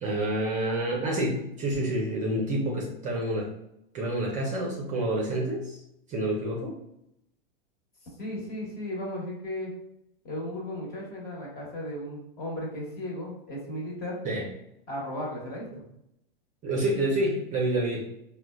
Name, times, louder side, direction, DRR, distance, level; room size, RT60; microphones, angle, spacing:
voice 1, 0.0-3.5 3.9-5.8 6.1-6.8 14.2-14.5 16.6-18.0, right 1 dB, 25° right, -1 dB, 0.5 m, -28 dB
voice 2, 8.2-9.7 10.2-14.2 14.9-15.8, left 1 dB, 30° left, -3 dB, 1.2 m, -35 dB
3.7 x 2.2 x 2.3 m, 0.80 s
hypercardioid pair, 120°, 30 cm